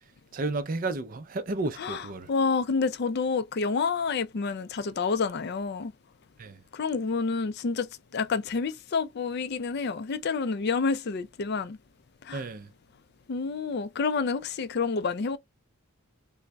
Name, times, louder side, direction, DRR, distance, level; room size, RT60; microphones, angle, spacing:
voice 1, 0.3-2.3 6.4-6.6 12.3-12.7, right 2 dB, 40° right, 0.5 m, -32 dB
voice 2, 1.8-5.9 6.7-11.8 12.3-12.4 13.3-15.4, left 4 dB, 50° left, 0.4 m, -29 dB
3.8 x 2.1 x 3.3 m
head